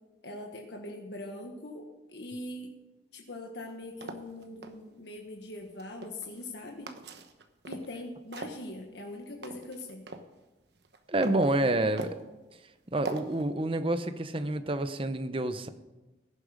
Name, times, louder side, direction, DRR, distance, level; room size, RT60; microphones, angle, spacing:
voice 1, 0.2-2.7 3.1-6.9 7.6-10.0, left 1 dB, 70° left, 1 dB, 1.5 m, -42 dB
sound 1, 3.6-4.7 5.6-6.5 6.9-8.0 8.3-10.3 10.7-11.5 12.0-12.3 13.0-13.4, right 2 dB, 70° right, 1.1 m, -42 dB
voice 2, 11.1-12.2 12.9-15.7, right 1 dB, 30° right, 10 dB, 0.8 m, -28 dB
16.5 x 10.5 x 5.1 m, 1.1 s
head